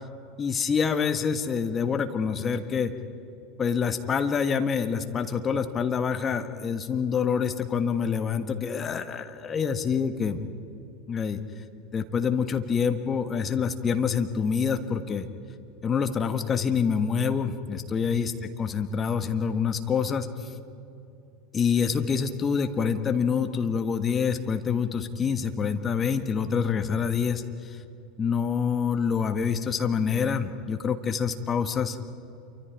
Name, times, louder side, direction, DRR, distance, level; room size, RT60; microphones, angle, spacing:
voice 1, 0.4-2.9 3.6-10.4 11.1-11.4 11.9-15.3 15.8-20.3 21.5-27.4 28.2-32.0, left 6 dB, 25° left, 8 dB, 1.4 m, -26 dB
28.0 x 24.5 x 4.8 m, 2.8 s
figure-of-eight pair, 80°, 0 cm